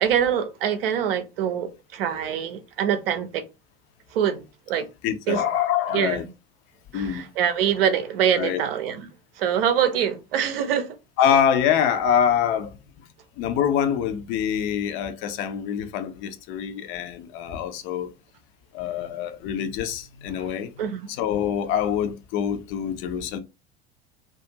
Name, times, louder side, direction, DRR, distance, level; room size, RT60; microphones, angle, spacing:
voice 1, 0.0-3.4 4.1-4.9 5.3-5.4 5.9-6.2 6.9-9.1 9.4-11.0 20.4-20.5 20.8-21.1, right 9 dB, 65° right, 0.6 m, -24 dB
voice 2, 5.0-6.2 6.9-7.3 8.4-8.6 11.2-12.7 13.4-18.1 18.7-20.7 21.2-23.4, left 8 dB, 40° left, 0.5 m, -25 dB
2.4 x 2.3 x 2.7 m
figure-of-eight pair, 80°, 31 cm